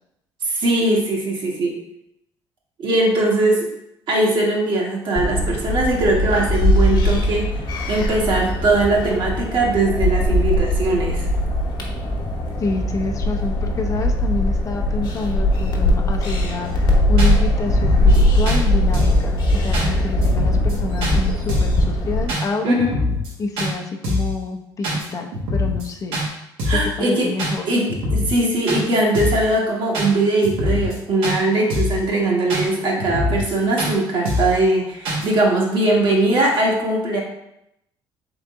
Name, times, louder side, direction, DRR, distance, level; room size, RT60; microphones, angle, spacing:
voice 1, 0.4-1.8 2.8-3.7 4.1-7.6 7.9-11.2 22.6-23.0 26.6-27.3 27.7-37.2, right 2 dB, 55° right, -2 dB, 1.3 m, -20 dB
sound 1, 5.2-22.3, left 1 dB, 50° left, 1.0 m, -20 dB
voice 2, 12.6-22.8 23.4-26.2 26.7-27.7, left 3 dB, 35° left, 3 dB, 0.5 m, -28 dB
sound 2, 16.6-16.7 17.2-17.3 17.7-18.2 18.5-18.6 18.9-19.2 19.7-19.9 20.2-20.7 21.0-21.2 21.5-21.8 22.3-22.4 22.8-23.3 23.6-23.7 24.0-24.4 24.8-25.1 25.3-25.9 26.1-26.3 26.6-26.9 27.4-27.5 27.9-28.4 28.7-28.8 29.1-29.5 29.9-30.1 30.4-31.0 31.2-31.4 31.7-32.0 32.5-32.6 33.0-33.5 33.8-33.9 34.3-34.6 35.1-35.3, left 1 dB, 85° right, 1.3 m, -23 dB
3.8 x 3.3 x 3.5 m, 0.81 s
cardioid pair, 90°, 9 cm